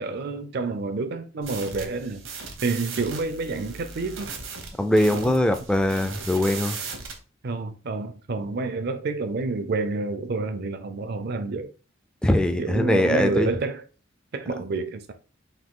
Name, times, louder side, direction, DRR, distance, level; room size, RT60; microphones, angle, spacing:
voice 1, 0.0-2.2 2.6-4.3 5.1-5.4 7.4-11.7 12.6-13.8 14.3-15.1, right 3 dB, 55° right, 0.5 m, -29 dB
sound 1, 1.4-7.2, right 5 dB, 75° right, 1.0 m, -38 dB
voice 2, 4.8-6.8 12.2-13.5, left 1 dB, 5° left, 0.3 m, -21 dB
3.9 x 2.7 x 3.6 m
head